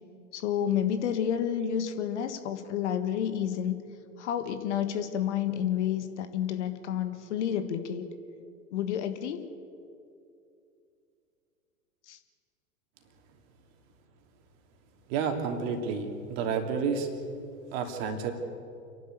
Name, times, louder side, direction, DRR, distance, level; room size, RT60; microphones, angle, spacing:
voice 1, 0.3-3.8 4.2-8.1 8.7-9.4 12.1-12.2, left 9 dB, 55° left, 9 dB, 1.7 m, -30 dB
voice 2, 15.1-17.1 17.7-18.3, right 6 dB, 45° right, 4 dB, 3.0 m, -30 dB
29.5 x 11.5 x 8.4 m, 2.6 s
figure-of-eight pair, 95°, 42 cm